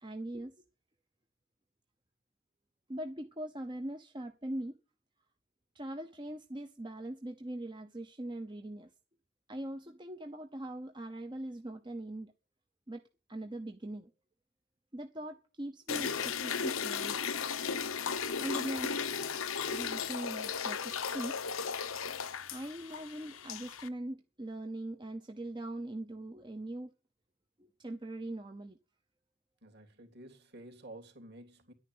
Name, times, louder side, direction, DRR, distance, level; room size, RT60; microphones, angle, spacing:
voice 1, 0.0-0.5 2.9-4.8 5.7-8.9 9.5-12.3 12.9-13.0 13.3-14.1 14.9-17.2 18.4-18.9 19.7-21.4 22.5-26.9 27.6-28.8, right 1 dB, 20° right, 0.8 m, -41 dB
sound 1, 15.9-23.9, left 6 dB, 85° left, 1.1 m, -36 dB
voice 2, 29.6-31.7, right 1 dB, 50° right, 3.2 m, -51 dB
11.0 x 9.8 x 7.8 m
head